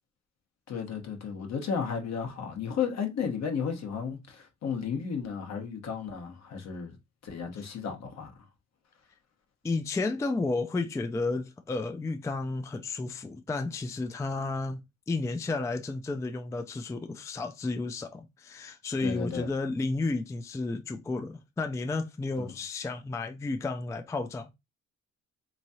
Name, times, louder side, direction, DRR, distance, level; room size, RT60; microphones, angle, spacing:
voice 1, 0.7-6.9 7.2-8.3 19.0-19.5 22.4-22.5, left 6 dB, 60° left, 1.1 m, -33 dB
voice 2, 9.6-14.8 15.1-24.5, left 3 dB, 10° left, 0.3 m, -32 dB
3.6 x 3.1 x 2.7 m
cardioid pair, 90°, 30 cm